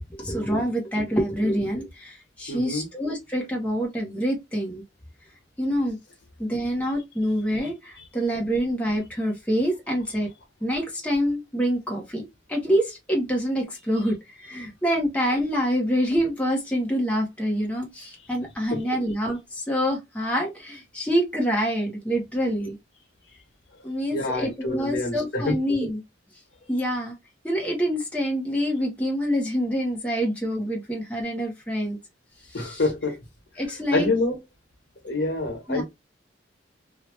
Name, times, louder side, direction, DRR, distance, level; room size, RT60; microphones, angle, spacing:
voice 1, 0.2-4.8 5.6-6.0 6.4-10.3 10.6-22.8 23.8-26.0 26.7-27.1 27.4-32.0 32.5-32.8 33.6-34.1 35.7-35.8, equal, 5° left, 0.8 m, -26 dB
voice 2, 2.5-2.9 18.7-18.8 24.1-25.6 32.5-33.2 33.9-34.4 35.0-35.8, left 2 dB, 75° left, 1.2 m, -26 dB
2.8 x 2.3 x 3.1 m
head